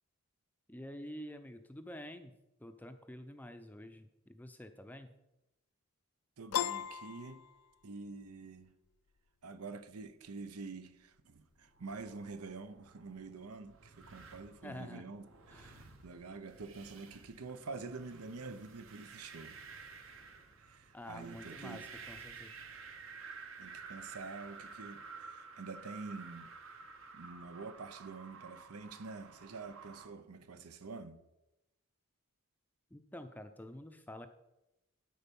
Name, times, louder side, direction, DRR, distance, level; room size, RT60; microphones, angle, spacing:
voice 1, 0.7-5.1 14.6-15.1 15.5-15.9 20.9-22.5 32.9-34.3, left 1 dB, 10° left, 0.5 m, -48 dB
voice 2, 6.4-7.4 7.8-8.8 9.4-19.6 20.6-21.9 23.6-26.5 27.1-31.3, right 4 dB, 85° right, 0.7 m, -47 dB
Piano, 6.5-8.1, left 9 dB, 85° left, 0.4 m, -37 dB
sound 1, 11.6-30.1, right 5 dB, 60° right, 1.1 m, -52 dB
12.5 x 4.5 x 5.4 m
head